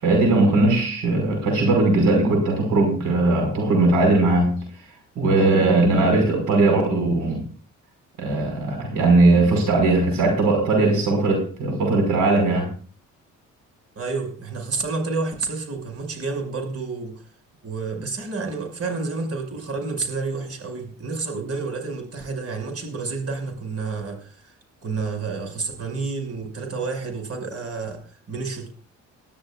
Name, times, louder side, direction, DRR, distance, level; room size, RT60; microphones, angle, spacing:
voice 1, 0.0-4.6 5.2-7.4 8.2-12.7, right 2 dB, 85° right, 2 dB, 5.3 m, -19 dB
voice 2, 14.0-17.2 17.6-24.5 24.8-28.7, right 4 dB, 55° right, 4 dB, 5.9 m, -30 dB
21.5 x 13.0 x 2.5 m, 0.42 s
cardioid pair, 90°, 30 cm